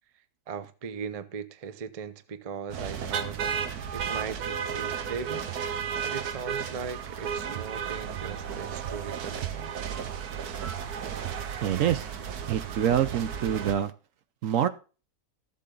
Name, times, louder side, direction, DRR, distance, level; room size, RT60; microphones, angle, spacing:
voice 1, 0.5-3.4 3.9-5.5 6.0-9.9, right 6 dB, 35° right, 0.6 m, -38 dB
sound 1, 2.7-13.7, right 7 dB, 90° right, 1.5 m, -33 dB
voice 2, 11.6-12.1 12.5-13.9 14.4-14.7, right 9 dB, 65° right, 1.0 m, -26 dB
13.5 x 7.7 x 3.8 m
omnidirectional pair, 1.6 m